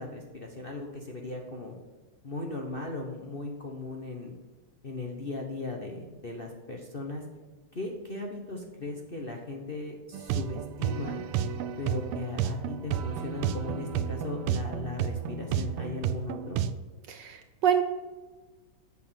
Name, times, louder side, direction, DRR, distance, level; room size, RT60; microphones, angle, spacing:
voice 1, 0.0-1.7 2.2-4.3 4.8-7.2 7.7-11.2 11.8-16.6, left 2 dB, 35° left, 1 dB, 0.9 m, -37 dB
sound 1, 10.1-16.8, right 8 dB, 90° right, 1.5 m, -31 dB
voice 2, 17.1-17.8, right 8 dB, 70° right, 8 dB, 1.1 m, -26 dB
8.3 x 6.6 x 7.6 m, 1.3 s
omnidirectional pair, 2.4 m